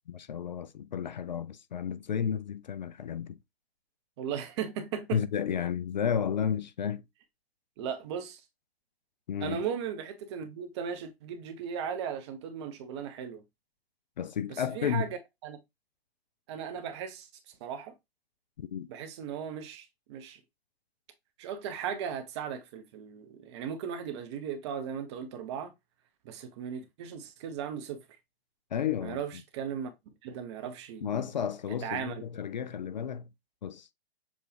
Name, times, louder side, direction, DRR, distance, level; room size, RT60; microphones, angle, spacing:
voice 1, 0.1-3.4 5.1-7.0 9.3-9.6 14.2-15.1 18.6-18.9 28.7-29.2 31.0-33.3 33.6-33.9, left 8 dB, 45° left, 0.4 m, -32 dB
voice 2, 4.2-5.2 7.8-8.4 9.4-13.4 14.5-15.1 15.4-15.6 16.5-17.3 17.6-17.9 18.9-20.4 21.4-25.7 26.2-28.0 29.0-29.9 30.2-31.1 31.8-32.2, right 7 dB, 25° right, 0.7 m, -37 dB
7.0 x 2.4 x 3.1 m
figure-of-eight pair, 120°, 31 cm